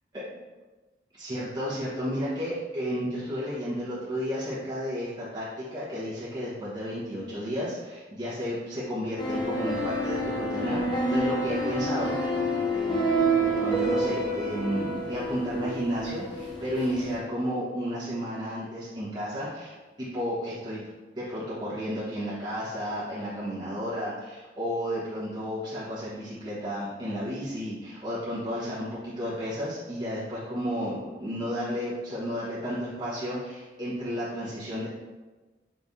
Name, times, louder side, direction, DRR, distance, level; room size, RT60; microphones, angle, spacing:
voice 1, 1.2-5.5 5.7-12.1 12.7-13.1 13.4-20.8 21.2-34.9, equal, 25° right, -10 dB, 1.1 m, -32 dB
sound 1, 9.2-17.2, right 1 dB, 25° left, 0.5 m, -28 dB
4.1 x 3.4 x 3.5 m, 1.2 s
head